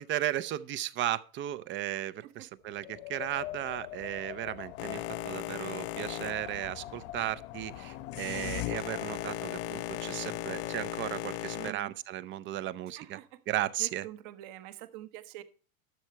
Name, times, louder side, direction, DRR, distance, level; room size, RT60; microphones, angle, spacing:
voice 1, 0.0-13.2 13.5-14.0, right 13 dB, 30° right, 0.5 m, -35 dB
Wind, 2.6-11.1, left 15 dB, 65° left, 1.1 m, -45 dB
Boat Water vehicle, 4.8-11.7, left 14 dB, 35° left, 0.5 m, -38 dB
voice 2, 11.5-11.9 12.9-13.3 13.8-15.4, right 14 dB, 55° right, 1.2 m, -45 dB
12.0 x 6.6 x 4.4 m
supercardioid pair, 120°, 42 cm